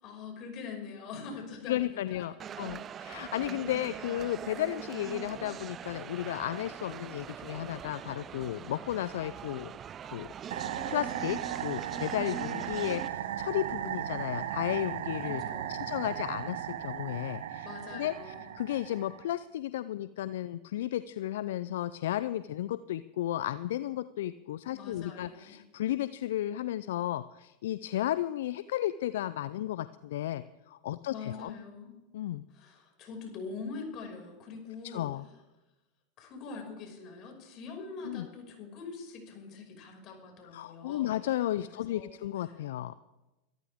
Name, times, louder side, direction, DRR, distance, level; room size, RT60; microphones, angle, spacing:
voice 1, 0.0-2.2 2.5-3.0 15.2-15.9 17.6-18.4 24.7-25.6 31.1-31.9 32.5-35.1 36.2-41.1 41.9-42.1, left 4 dB, 45° left, 2 dB, 5.9 m, -43 dB
voice 2, 1.7-9.7 10.1-10.3 10.9-15.4 15.7-31.5 32.1-32.4 34.9-35.2 38.0-38.3 40.5-42.9, left 13 dB, 70° left, 15 dB, 0.4 m, -34 dB
sound 1, 2.4-13.1, right 9 dB, 35° right, 0.5 m, -42 dB
sound 2, 10.5-19.3, right 10 dB, 70° right, 1.0 m, -36 dB
23.5 x 13.5 x 3.6 m, 1.0 s
hypercardioid pair, 90°, 0 cm